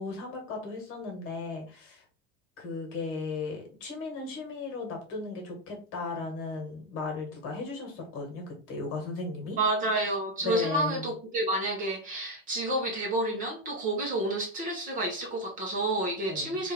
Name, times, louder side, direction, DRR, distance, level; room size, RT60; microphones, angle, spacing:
voice 1, 0.0-2.0 2.6-9.6 10.4-11.1 16.3-16.6, left 3 dB, 40° left, 1.5 m, -36 dB
voice 2, 9.6-16.7, right 1 dB, 25° right, 0.9 m, -29 dB
3.4 x 2.6 x 4.3 m
cardioid pair, 170°, 34 cm